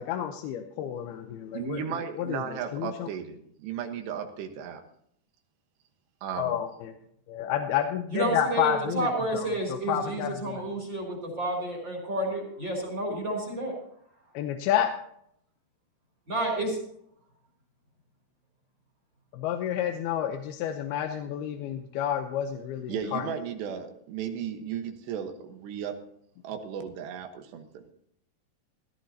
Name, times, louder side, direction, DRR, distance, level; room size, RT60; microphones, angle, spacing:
voice 1, 0.0-3.1 6.4-6.9 7.3-10.6 14.3-14.9 19.3-23.3, left 10 dB, 75° left, 5 dB, 2.6 m, -30 dB
voice 2, 1.5-4.8 6.2-6.6 22.9-25.9 26.4-27.9, right 8 dB, 90° right, 5 dB, 3.5 m, -35 dB
voice 3, 8.1-13.7 16.3-16.8, right 1 dB, 30° right, 0 dB, 3.6 m, -30 dB
17.0 x 13.5 x 2.8 m, 0.68 s
omnidirectional pair, 4.7 m